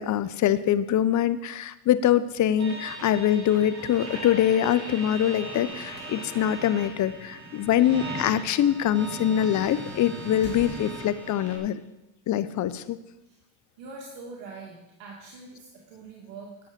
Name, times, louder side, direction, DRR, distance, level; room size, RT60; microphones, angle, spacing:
voice 1, 0.0-11.8 12.3-13.0, left 10 dB, 40° left, 15 dB, 0.7 m, -24 dB
sound 1, 2.6-11.6, right 2 dB, 35° right, 3.5 m, -39 dB
sound 2, 5.9-11.2, left 2 dB, 20° left, 3.5 m, -49 dB
voice 2, 13.8-16.6, right 3 dB, 80° right, -2 dB, 2.2 m, -43 dB
10.0 x 7.1 x 6.5 m, 0.98 s
supercardioid pair, 110°, 47 cm